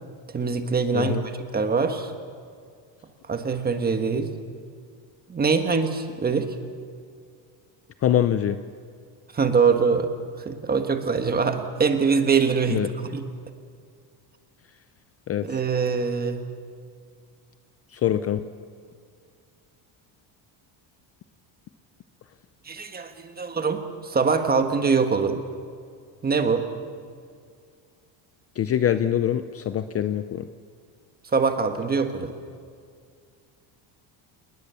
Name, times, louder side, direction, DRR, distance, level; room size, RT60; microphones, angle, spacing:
voice 1, 0.3-2.1 3.3-4.3 5.3-6.5 9.3-10.1 10.4-13.2 15.4-16.4 22.7-25.4 26.2-26.6 31.3-32.3, right 5 dB, 20° right, 7 dB, 1.5 m, -23 dB
voice 2, 8.0-8.6 12.7-12.9 15.3-15.6 17.9-18.4 28.6-30.5, left 10 dB, 30° left, 11 dB, 0.5 m, -24 dB
27.5 x 20.5 x 6.9 m, 2.2 s
cardioid pair, 170°, 46 cm